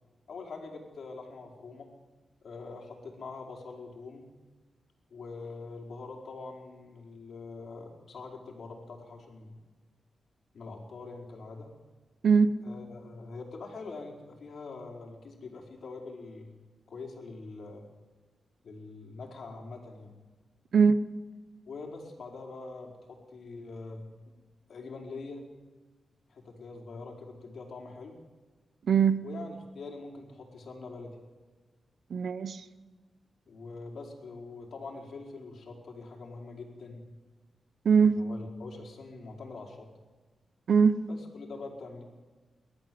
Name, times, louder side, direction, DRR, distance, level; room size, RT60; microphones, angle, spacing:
voice 1, 0.3-1.9 2.4-4.3 5.1-9.6 10.5-11.7 12.6-16.5 16.9-17.9 18.6-20.1 21.7-24.0 24.7-25.4 26.3-28.2 29.2-31.2 33.5-37.0 38.0-39.9 41.1-42.0, left 3 dB, 70° left, 4.7 m, -44 dB
voice 2, 28.9-29.2 32.1-32.6 37.8-38.2 40.7-41.1, right 6 dB, 75° right, 0.9 m, -21 dB
29.5 x 13.5 x 7.8 m
cardioid pair, 80°, 0 cm